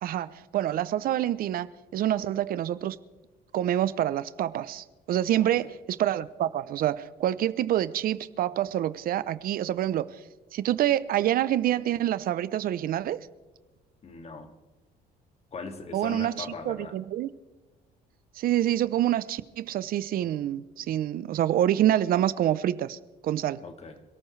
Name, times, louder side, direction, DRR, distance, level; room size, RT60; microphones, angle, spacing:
voice 1, 0.0-3.0 3.5-10.1 10.5-13.2 15.9-17.3 18.4-23.6, right 12 dB, 60° right, 0.6 m, -27 dB
voice 2, 5.4-5.7 14.0-14.6 15.5-17.0 23.6-24.0, left 4 dB, 40° left, 2.1 m, -40 dB
27.0 x 13.5 x 3.2 m
cardioid pair, 110°, 17 cm